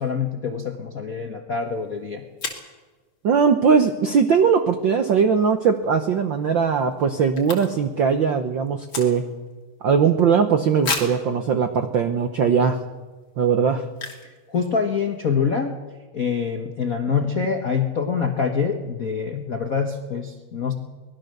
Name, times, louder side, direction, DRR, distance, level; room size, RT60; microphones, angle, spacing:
voice 1, 0.0-2.2 14.5-15.7 16.1-20.7, left 6 dB, 60° left, 4 dB, 0.9 m, -25 dB
sound 1, 1.7-1.8 2.4-2.7 5.7-5.9 6.3-6.4 6.5-8.0 8.3-9.5 10.0-10.1 10.8-11.3 12.0-12.1 12.6-12.7 13.9-14.4 14.6-14.7 14.9-15.2, left 4 dB, 40° left, 3.3 m, -32 dB
voice 2, 3.2-9.2 9.8-12.8 13.4-13.8, right 6 dB, 70° right, 8 dB, 1.1 m, -20 dB
24.0 x 19.5 x 6.6 m, 1.3 s
omnidirectional pair, 3.4 m